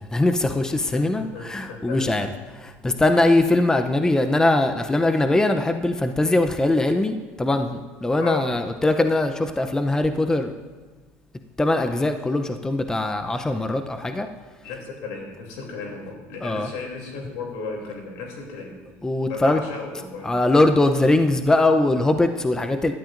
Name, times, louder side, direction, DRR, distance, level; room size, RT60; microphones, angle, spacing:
voice 1, 0.0-2.3 2.6-10.5 11.6-14.3 16.4-16.7 19.0-19.6 20.2-22.9, left 2 dB, 10° left, 7 dB, 0.6 m, -21 dB
voice 2, 0.9-2.2 8.2-8.5 14.6-18.8 19.3-20.3 20.9-21.0, left 4 dB, 85° left, 0 dB, 3.0 m, -35 dB
16.0 x 12.0 x 2.6 m, 1.4 s
supercardioid pair, 110°, 6 cm